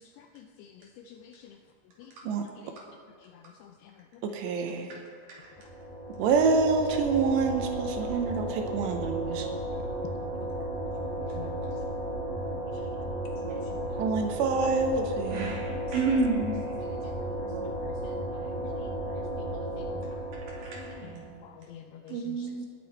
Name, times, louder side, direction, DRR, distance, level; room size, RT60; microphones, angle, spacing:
voice 1, 1.1-1.4 2.0-2.1 11.2-11.5 12.8-12.9 13.9-14.0 16.9-17.0 17.4-18.1 18.6-18.9 20.9-21.0 21.4-22.5, left 10 dB, 85° left, 5 dB, 2.3 m, -48 dB
voice 2, 4.2-5.0 6.2-9.5 14.0-15.5 22.1-22.7, right 4 dB, 80° right, 5 dB, 2.9 m, -27 dB
sound 1, 5.5-21.4, right 1 dB, 15° left, 1.8 m, -34 dB
voice 3, 15.3-16.6 20.6-21.3, right 3 dB, 55° right, -4 dB, 3.9 m, -30 dB
19.5 x 7.8 x 4.1 m, 2.1 s
omnidirectional pair, 5.2 m